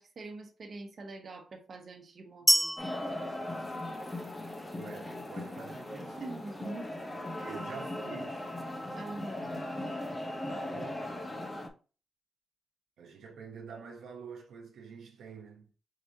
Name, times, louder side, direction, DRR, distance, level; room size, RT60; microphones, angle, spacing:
voice 1, 0.0-2.9 6.2-6.9 7.4-7.6 8.9-9.6, right 2 dB, 50° right, 1.2 m, -44 dB
sound 1, 2.5-4.4, equal, ahead, 0.4 m, -29 dB
sound 2, 2.8-11.7, left 1 dB, 20° left, 0.9 m, -38 dB
voice 2, 4.7-6.2 7.5-8.5 10.4-11.1 13.0-15.7, right 5 dB, 90° right, 1.0 m, -47 dB
4.8 x 3.2 x 2.8 m
cardioid pair, 85°, 0 cm